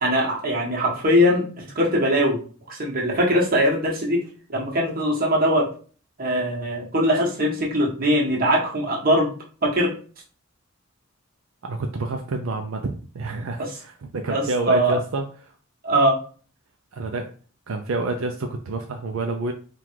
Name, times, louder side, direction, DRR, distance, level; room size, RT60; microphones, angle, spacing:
voice 1, 0.0-2.4 2.7-4.2 4.5-5.6 6.2-9.3 9.6-9.9 14.3-15.0 15.8-16.2, equal, 40° right, -2 dB, 1.3 m, -21 dB
voice 2, 11.6-15.5 16.9-17.3 17.7-19.5, right 3 dB, 75° right, 3 dB, 0.5 m, -28 dB
3.7 x 2.4 x 4.5 m, 0.41 s
head